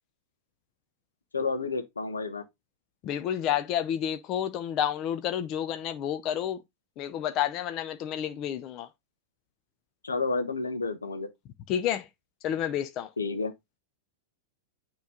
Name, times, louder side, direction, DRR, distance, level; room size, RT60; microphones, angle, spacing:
voice 1, 1.3-2.4 10.0-11.3 13.2-13.5, left 4 dB, 80° left, 1.0 m, -30 dB
voice 2, 3.0-6.6 7.0-8.9 11.7-12.0 12.4-13.1, left 10 dB, 40° left, 0.6 m, -30 dB
9.2 x 3.1 x 3.7 m
figure-of-eight pair, 95°, 0 cm